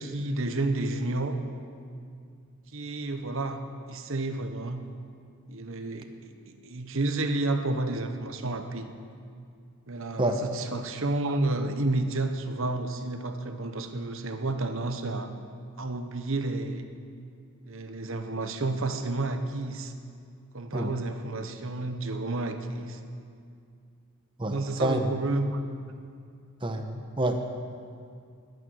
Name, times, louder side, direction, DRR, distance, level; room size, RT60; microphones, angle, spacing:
voice 1, 0.0-1.4 2.7-4.8 5.5-8.9 9.9-15.3 15.8-16.8 17.6-19.9 20.5-23.0 24.4-25.6 27.2-27.4, right 2 dB, 60° right, 8 dB, 1.1 m, -31 dB
voice 2, 24.4-25.1 26.6-27.4, right 1 dB, 20° right, 5 dB, 1.0 m, -28 dB
21.0 x 9.1 x 6.3 m, 2.3 s
head